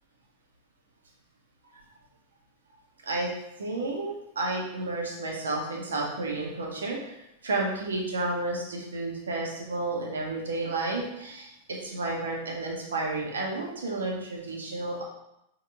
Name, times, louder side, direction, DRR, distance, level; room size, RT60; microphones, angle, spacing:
voice 1, 3.6-7.2 7.4-15.0, right 2 dB, 70° right, -1 dB, 1.6 m, -31 dB
7.5 x 4.7 x 3.6 m, 0.83 s
figure-of-eight pair, 90°, 0 cm